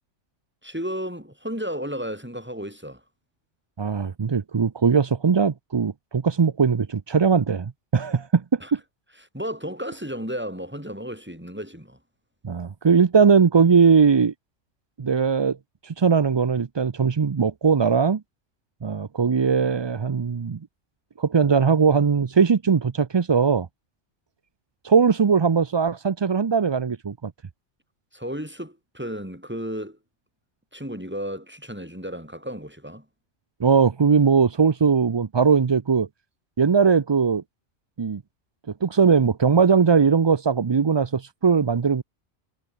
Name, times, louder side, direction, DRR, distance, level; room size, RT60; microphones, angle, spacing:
voice 1, 0.6-3.0 8.6-8.7 9.3-12.0 28.1-30.0 30.7-33.1, equal, 10° right, 6.1 m, -33 dB
voice 2, 3.8-8.6 12.4-14.3 15.0-15.6 15.8-18.2 18.8-20.6 21.2-23.7 24.8-27.3 33.6-36.1 36.6-37.4 38.0-38.2 38.8-42.0, right 6 dB, 45° right, 0.3 m, -20 dB
omnidirectional pair, 1.3 m